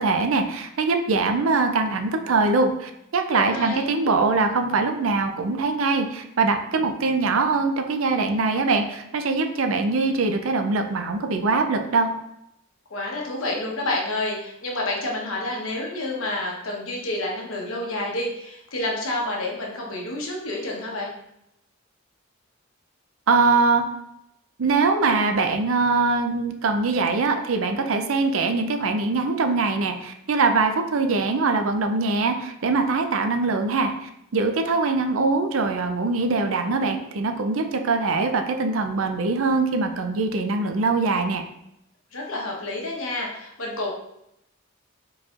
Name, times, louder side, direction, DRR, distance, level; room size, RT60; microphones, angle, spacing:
voice 1, 0.0-12.1 23.3-23.8 24.6-41.4, right 3 dB, 75° right, 5 dB, 0.5 m, -22 dB
voice 2, 3.3-3.9 12.9-21.1 42.1-43.9, left 2 dB, 75° left, -2 dB, 1.1 m, -29 dB
4.7 x 4.1 x 2.5 m, 0.81 s
head